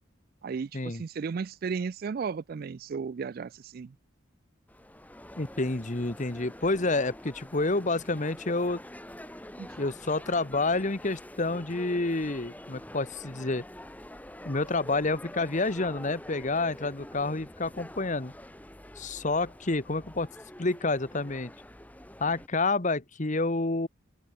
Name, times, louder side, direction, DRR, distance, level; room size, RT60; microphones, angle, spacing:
voice 1, 0.4-3.9 9.6-9.7, right 5 dB, 50° right, 0.4 m, -34 dB
sound 1, 4.7-22.5, left 1 dB, 10° left, 2.3 m, -46 dB
voice 2, 5.4-8.8 9.8-13.6 14.4-18.3 19.0-20.3 20.6-21.5 22.2-23.9, left 3 dB, 40° left, 1.3 m, -29 dB
open air
head